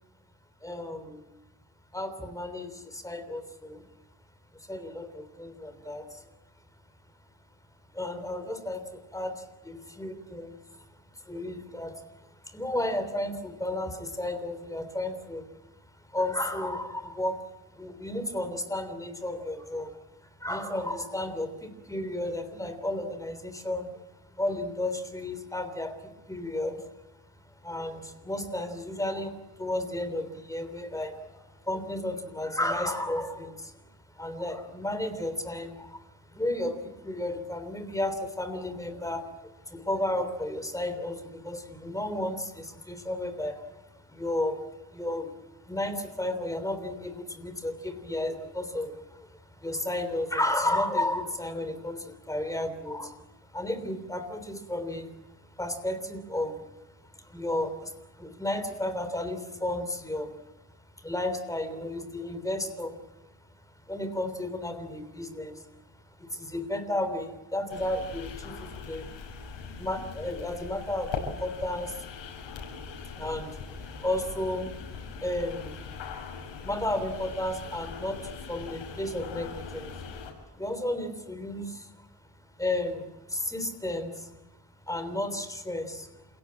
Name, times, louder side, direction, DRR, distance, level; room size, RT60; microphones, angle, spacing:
voice 1, 0.6-1.2 1.9-3.8 4.7-6.2 7.9-10.6 11.2-12.0 12.5-15.5 16.1-17.4 17.7-19.9 20.4-24.0 24.4-26.8 27.6-33.7 34.1-39.3 39.7-44.6 44.9-45.3 45.6-53.2 53.5-55.1 55.6-56.6 57.1-60.3 61.0-63.0 63.9-65.7 66.2-69.1 69.7-72.0 73.1-73.6 74.0-74.8 75.2-75.8 76.6-80.2 80.5-82.1 82.6-84.3 84.9-86.1, left 1 dB, 10° left, 9 dB, 3.3 m, -33 dB
sound 1, 67.7-80.3, left 5 dB, 85° left, 6.5 m, -41 dB
28.0 x 17.0 x 8.7 m, 1.0 s
cardioid pair, 115°, 43 cm